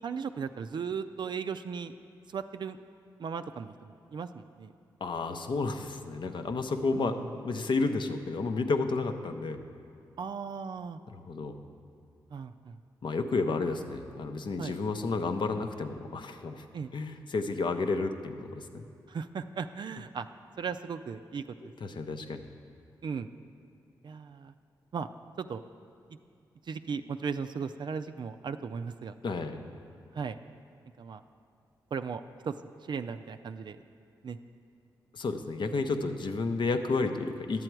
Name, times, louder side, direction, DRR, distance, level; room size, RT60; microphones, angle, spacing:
voice 1, 0.0-1.9 2.3-2.8 3.2-4.7 6.9-7.3 10.2-11.0 12.3-12.8 13.5-13.7 14.6-14.7 16.7-16.9 19.1-20.3 20.6-22.0 23.0-23.3 24.0-24.5 24.9-25.1 25.4-25.6 26.1-26.2 26.7-29.1 30.1-30.4 31.0-31.2 31.9-32.5 32.9-33.8 34.2-34.4, right 6 dB, 55° right, 9 dB, 0.4 m, -37 dB
voice 2, 5.0-9.6 11.1-11.6 13.0-16.6 16.9-18.8 21.6-22.5 29.2-29.7 35.1-37.6, left 3 dB, 60° left, 7 dB, 0.7 m, -31 dB
11.0 x 7.7 x 4.6 m, 2.4 s
supercardioid pair, 40°, 9 cm